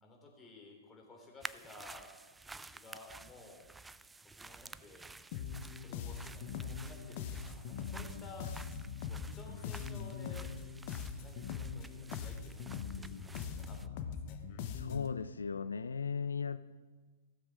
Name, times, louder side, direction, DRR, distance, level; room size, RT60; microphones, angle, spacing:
voice 1, 0.0-2.1 2.5-3.7 4.3-5.1 5.8-8.5 9.1-10.5 11.2-14.4, left 2 dB, 20° left, 0 dB, 3.2 m, -55 dB
sound 1, 1.4-13.9, right 3 dB, 10° right, 0.3 m, -52 dB
sound 2, 5.3-15.2, left 7 dB, 50° left, 1.0 m, -42 dB
voice 2, 14.7-16.6, left 6 dB, 85° left, 14 dB, 0.3 m, -37 dB
16.0 x 7.3 x 4.9 m, 1.3 s
hypercardioid pair, 115°, 0 cm